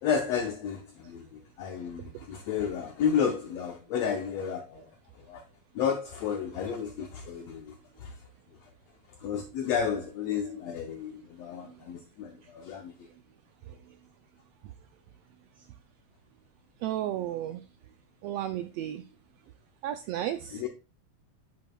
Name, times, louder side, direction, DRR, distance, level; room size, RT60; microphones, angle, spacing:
voice 1, 0.0-4.9 5.2-5.4 5.8-8.1 9.2-12.9 20.5-20.7, left 7 dB, 70° left, 1.8 m, -32 dB
voice 2, 16.8-17.6 18.2-19.0 19.8-20.6, right 12 dB, 90° right, 1.4 m, -33 dB
11.0 x 6.8 x 2.2 m
omnidirectional pair, 3.4 m